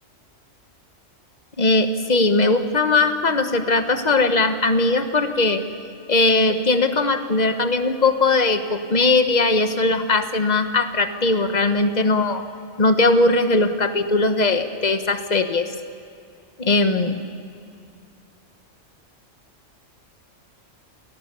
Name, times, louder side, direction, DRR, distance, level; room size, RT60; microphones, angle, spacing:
voice 1, 1.6-5.6 6.1-12.5 12.8-15.7 16.6-17.2, left 3 dB, 35° left, 9 dB, 1.2 m, -19 dB
29.0 x 18.0 x 6.9 m, 2.3 s
omnidirectional pair, 1.3 m